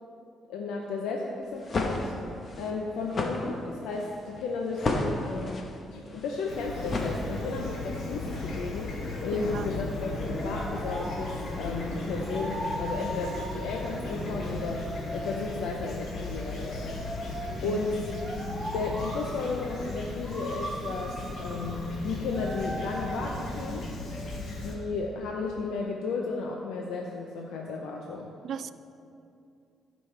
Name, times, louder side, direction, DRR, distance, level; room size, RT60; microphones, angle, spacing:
voice 1, 0.5-2.1 2.6-14.8 15.1-16.9 17.3-18.0 18.7-23.8 24.6-28.3, left 4 dB, 85° left, 0 dB, 0.7 m, -34 dB
sound 1, 1.4-7.7, left 2 dB, 45° left, 1.0 m, -33 dB
Fowl / Chirp tweet, 6.5-24.8, left 2 dB, 65° left, 1.4 m, -36 dB
sound 2, 6.8-24.8, right 1 dB, 20° right, 1.4 m, -41 dB
voice 2, 9.3-9.7 17.6-18.0 28.4-28.7, right 8 dB, 60° right, 14 dB, 0.3 m, -37 dB
15.5 x 5.4 x 3.3 m, 2.6 s
cardioid pair, 90°, 0 cm